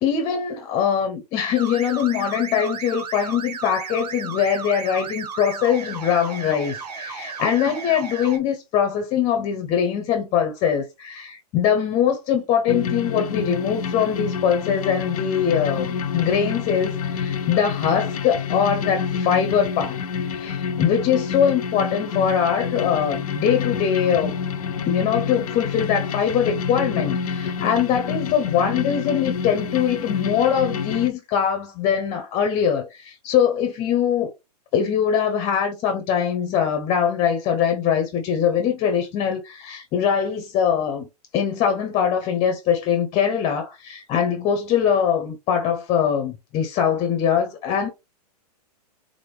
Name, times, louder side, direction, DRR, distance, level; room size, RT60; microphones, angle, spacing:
voice 1, 0.0-20.0 20.3-24.3 24.9-34.3 34.7-41.1 41.3-47.9, left 8 dB, 30° left, 0.9 m, -22 dB
sound 1, 1.5-8.4, right 5 dB, 75° right, 1.0 m, -34 dB
sound 2, 12.7-31.1, left 6 dB, 60° left, 0.7 m, -28 dB
3.7 x 3.5 x 3.3 m
hypercardioid pair, 110°, 21 cm